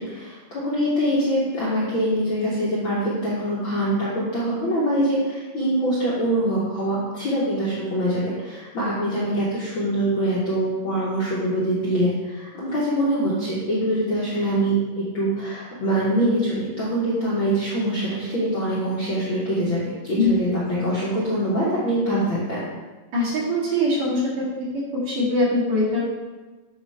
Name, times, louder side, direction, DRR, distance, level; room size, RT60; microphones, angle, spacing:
voice 1, 0.0-19.8 20.1-22.6, right 1 dB, 55° left, -8 dB, 1.4 m, -24 dB
voice 2, 23.1-24.5 24.7-26.0, left 1 dB, 55° right, -7 dB, 3.0 m, -22 dB
7.8 x 3.2 x 5.4 m, 1.2 s
omnidirectional pair, 3.9 m